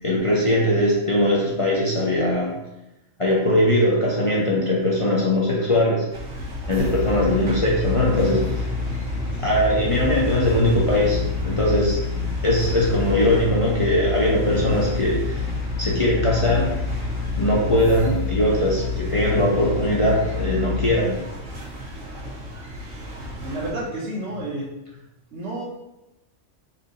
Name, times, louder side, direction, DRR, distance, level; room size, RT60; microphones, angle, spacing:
voice 1, 0.0-2.6 3.2-6.1 6.7-8.7 9.4-12.0 12.4-15.5 15.8-16.7 17.4-21.3, left 1 dB, 35° left, -5 dB, 0.5 m, -21 dB
sound 1, 6.1-23.7, equal, 85° right, 1.7 m, -33 dB
sound 2, 6.8-20.9, left 6 dB, 65° left, 0.8 m, -28 dB
voice 2, 23.4-24.7 25.3-25.6, right 1 dB, 65° right, -4 dB, 1.5 m, -30 dB
4.3 x 2.6 x 3.9 m, 0.94 s
omnidirectional pair, 1.3 m